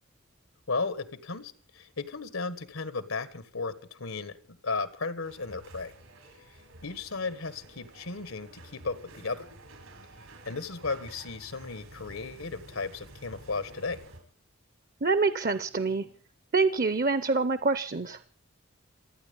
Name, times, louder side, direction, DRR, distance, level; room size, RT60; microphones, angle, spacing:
voice 1, 0.7-4.4 4.6-5.9 6.8-9.5 10.4-14.0, left 4 dB, 90° left, 1.6 m, -35 dB
sound 1, 5.2-14.2, right 1 dB, 90° right, 5.4 m, -50 dB
voice 2, 15.0-16.1 16.5-18.2, right 4 dB, 45° right, 0.7 m, -26 dB
27.5 x 9.6 x 5.4 m
head